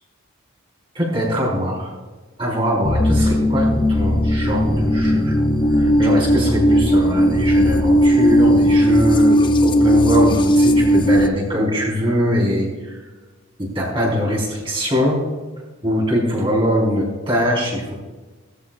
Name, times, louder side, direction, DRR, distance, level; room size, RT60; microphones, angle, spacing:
voice 1, 0.9-1.9 2.4-5.4 5.7-13.0 13.6-15.2 15.8-18.0, equal, 25° right, -4 dB, 4.5 m, -22 dB
sound 1, 2.8-11.3, equal, 20° left, 0.6 m, -16 dB
20.0 x 14.0 x 2.5 m, 1.3 s
head